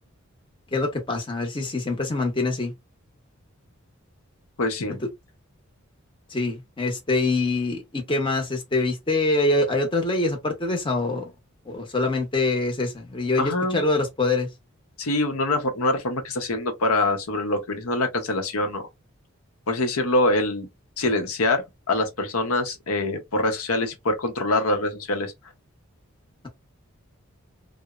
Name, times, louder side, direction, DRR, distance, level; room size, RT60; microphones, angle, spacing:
voice 1, 0.7-2.7 5.0-5.1 6.3-11.3 11.7-14.5, left 2 dB, 25° left, 0.7 m, -24 dB
voice 2, 4.6-5.0 13.4-13.9 15.0-18.9 19.7-20.7 21.0-25.3, left 2 dB, 85° left, 0.7 m, -24 dB
2.8 x 2.0 x 2.3 m
head